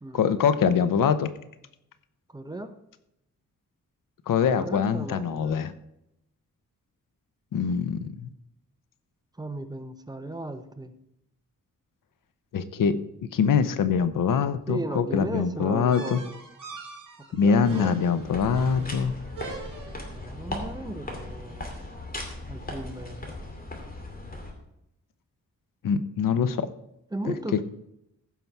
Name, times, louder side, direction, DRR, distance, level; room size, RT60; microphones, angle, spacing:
voice 1, 0.1-1.3 4.3-5.7 7.5-8.3 12.5-13.0 13.3-16.2 17.3-19.1 25.8-26.7, left 6 dB, 85° left, 13 dB, 0.8 m, -24 dB
voice 2, 2.3-2.7 4.5-5.6 9.4-11.0 14.7-16.4 17.2-18.0 20.1-21.7 22.5-23.3 27.1-27.6, right 2 dB, 10° right, 8 dB, 0.8 m, -36 dB
sound 1, 15.9-20.2, right 4 dB, 75° right, 3.3 m, -41 dB
sound 2, 18.2-24.5, left 2 dB, 30° left, 2.5 m, -38 dB
15.0 x 5.7 x 4.6 m, 0.83 s
wide cardioid pair, 120°, 32 cm